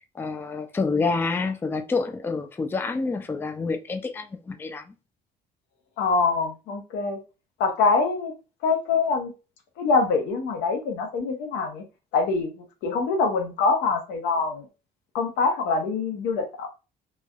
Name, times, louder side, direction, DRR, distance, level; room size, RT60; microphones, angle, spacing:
voice 1, 0.1-4.9, left 4 dB, 15° left, 0.3 m, -28 dB
voice 2, 6.0-7.2 7.6-8.3 8.6-9.3 9.8-11.8 12.1-14.7 15.1-16.7, left 4 dB, 90° left, 0.8 m, -24 dB
3.2 x 2.2 x 2.4 m
cardioid pair, 110°, 17 cm